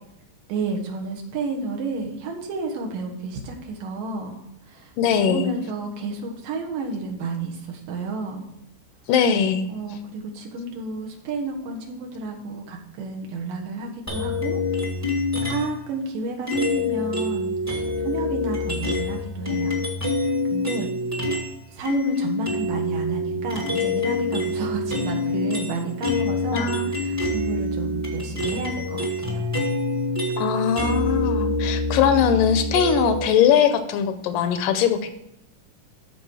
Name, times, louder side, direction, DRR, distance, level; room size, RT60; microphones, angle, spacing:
voice 1, 0.5-8.5 9.7-14.6 15.4-19.8 20.5-20.9 21.2-21.3 21.7-29.4, right 3 dB, 75° right, 1 dB, 3.1 m, -31 dB
voice 2, 5.0-5.5 9.1-9.7 26.5-26.9 30.4-35.1, left 8 dB, 80° left, 9 dB, 2.1 m, -21 dB
sound 1, 14.1-15.8 16.5-21.5 21.8-33.3, left 2 dB, 10° right, 0.9 m, -26 dB
13.5 x 4.5 x 4.8 m, 0.82 s
omnidirectional pair, 4.0 m